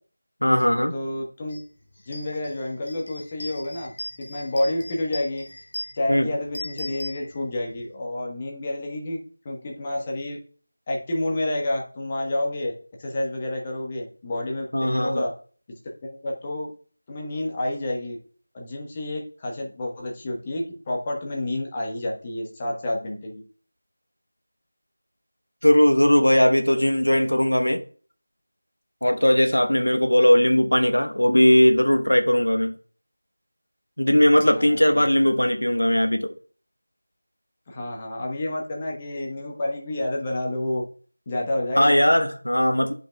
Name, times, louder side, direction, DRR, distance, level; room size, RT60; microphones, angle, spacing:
voice 1, 0.4-0.9 6.1-6.3 14.7-15.2 25.6-27.8 29.0-32.7 34.0-36.3 41.8-42.9, equal, 80° left, 1.0 m, -19 dB
voice 2, 0.9-1.6 2.1-3.9 4.2-5.4 6.0-10.4 10.9-12.7 13.0-15.3 16.1-16.7 17.1-18.2 18.5-23.4 34.4-35.1 37.7-40.8 41.3-41.9, left 1 dB, 20° left, 1.2 m, -29 dB
sound 1, 1.5-1.6 2.0-7.8, equal, 40° left, 1.7 m, -39 dB
11.0 x 5.3 x 2.3 m
figure-of-eight pair, 170°, 0 cm